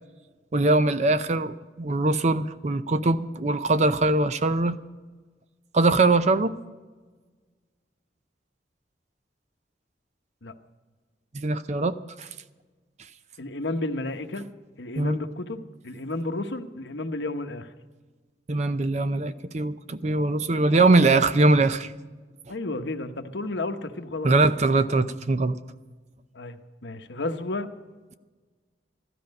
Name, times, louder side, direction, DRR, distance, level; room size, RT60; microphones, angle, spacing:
voice 1, 0.5-4.8 5.7-6.6 11.3-12.3 15.0-15.2 18.5-21.9 24.2-25.6, right 2 dB, 40° right, 12 dB, 0.6 m, -22 dB
voice 2, 13.4-14.4 14.8-17.7 22.5-24.3 26.3-27.7, left 2 dB, 85° left, 7 dB, 1.0 m, -32 dB
15.0 x 13.0 x 5.3 m, 1.3 s
head